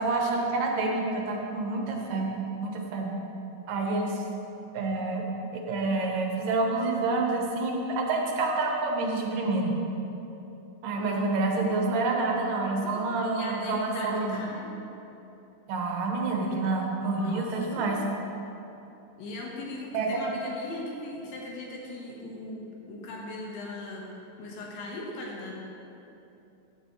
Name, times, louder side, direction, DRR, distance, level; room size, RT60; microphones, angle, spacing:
voice 1, 0.0-3.2 3.7-4.2 4.7-5.3 5.7-9.8 10.8-14.4 15.7-18.0 19.9-20.2, right 3 dB, 80° right, 1 dB, 2.8 m, -28 dB
voice 2, 12.8-14.7 16.4-16.6 17.2-17.4 17.8-18.1 19.2-25.5, left 2 dB, 90° left, -2 dB, 3.2 m, -39 dB
15.0 x 8.0 x 3.2 m, 2.9 s
omnidirectional pair, 3.9 m